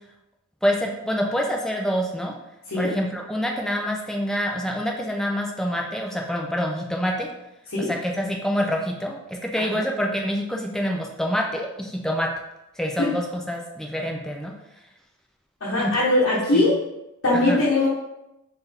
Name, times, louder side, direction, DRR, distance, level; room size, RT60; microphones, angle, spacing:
voice 1, 0.6-2.3 2.7-7.3 7.9-12.3 12.8-14.5 15.8-15.9 16.3-16.7 17.5-17.6, equal, 5° left, 0 dB, 0.5 m, -26 dB
voice 2, 15.6-16.8 17.2-17.9, left 2 dB, 70° left, -7 dB, 1.0 m, -21 dB
4.1 x 2.7 x 3.4 m, 0.90 s
head